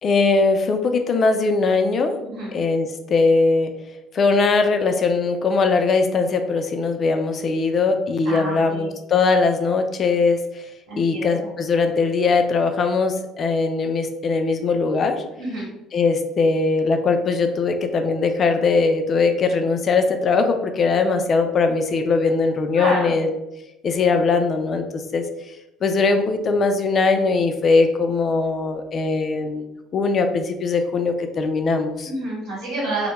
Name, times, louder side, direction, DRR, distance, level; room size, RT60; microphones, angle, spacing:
voice 1, 0.0-2.2 2.5-3.7 4.1-10.4 11.0-15.2 15.9-23.3 23.8-25.3 25.8-32.1, left 4 dB, 45° left, 6 dB, 0.3 m, -20 dB
voice 2, 2.2-2.6 8.2-8.9 10.9-11.5 15.4-15.7 22.7-23.2 32.0-33.1, right 1 dB, 85° right, -6 dB, 1.3 m, -29 dB
2.1 x 2.1 x 3.0 m, 0.94 s
hypercardioid pair, 65°, 0 cm